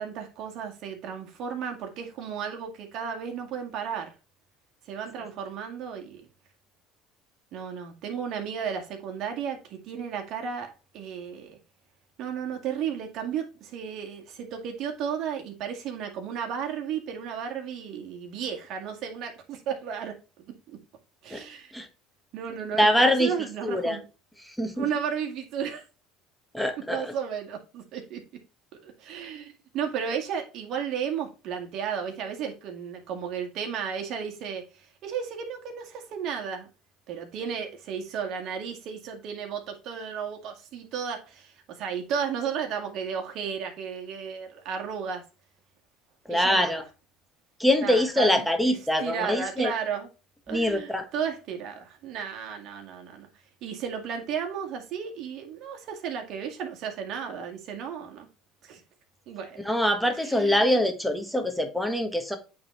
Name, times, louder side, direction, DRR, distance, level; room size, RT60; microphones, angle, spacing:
voice 1, 0.0-4.1 4.9-6.3 7.5-11.6 12.2-20.8 21.2-21.7 22.3-24.0 24.8-25.8 26.9-28.2 28.8-36.7 37.1-45.2 46.3-46.8 47.8-50.1 50.5-53.3 53.6-58.3 58.6-58.8 59.3-59.6 60.2-60.7, right 7 dB, 60° right, 2.0 m, -34 dB
voice 2, 22.8-23.3 23.6-24.0 24.5-24.9 26.5-27.1 46.3-46.8 47.6-49.7 50.5-51.0 59.6-62.4, left 1 dB, ahead, 1.5 m, -24 dB
8.6 x 4.0 x 3.2 m
supercardioid pair, 100°, 0 cm